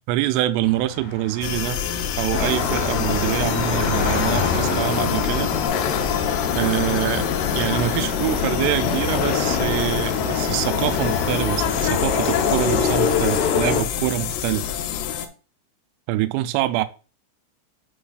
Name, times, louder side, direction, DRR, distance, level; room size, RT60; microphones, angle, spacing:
voice 1, 0.1-1.8 2.2-5.6 6.6-14.7 16.1-16.9, right 15 dB, 90° right, 3.1 m, -25 dB
Car / Traffic noise roadway noise, 0.6-5.7, left 3 dB, 40° left, 2.2 m, -31 dB
sound 1, 1.4-15.3, left 9 dB, 90° left, 3.4 m, -28 dB
sound 2, 2.3-13.8, left 6 dB, 75° left, 2.6 m, -24 dB
10.0 x 5.6 x 2.4 m
omnidirectional pair, 5.6 m